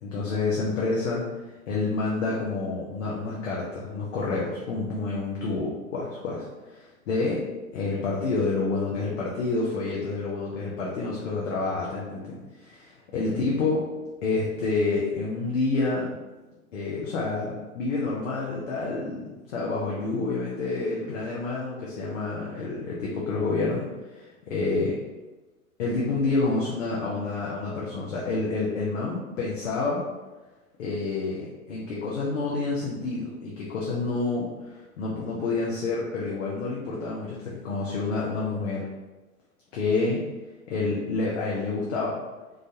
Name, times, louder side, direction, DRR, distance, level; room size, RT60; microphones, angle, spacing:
voice 1, 0.0-1.2 1.7-7.5 7.7-13.9 14.2-16.1 16.7-24.9 25.8-30.0 30.8-38.9 39.7-40.3 40.7-42.2, left 3 dB, 60° left, -4 dB, 0.8 m, -28 dB
3.9 x 2.5 x 2.8 m, 1.2 s
figure-of-eight pair, 100°, 44 cm